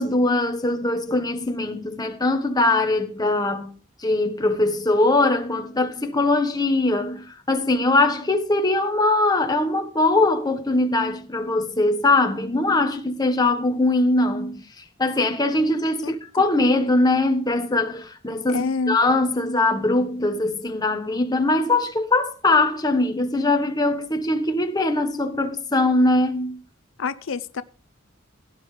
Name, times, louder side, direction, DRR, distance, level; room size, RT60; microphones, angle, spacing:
voice 1, 0.0-26.6, left 2 dB, 20° left, 1.2 m, -21 dB
voice 2, 18.5-19.0 27.0-27.6, left 4 dB, 80° left, 0.6 m, -26 dB
17.0 x 9.5 x 3.3 m
head